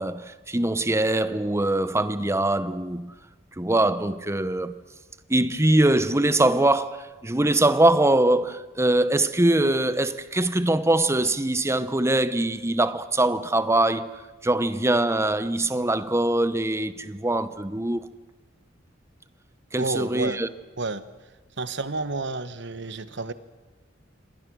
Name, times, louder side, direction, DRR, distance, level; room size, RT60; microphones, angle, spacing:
voice 1, 0.0-3.1 3.6-4.8 5.3-18.1 19.7-20.5, right 1 dB, 15° right, 0.9 m, -23 dB
voice 2, 19.8-20.4 20.8-21.0 21.6-23.3, right 3 dB, 65° right, 1.2 m, -30 dB
27.0 x 25.5 x 6.3 m
head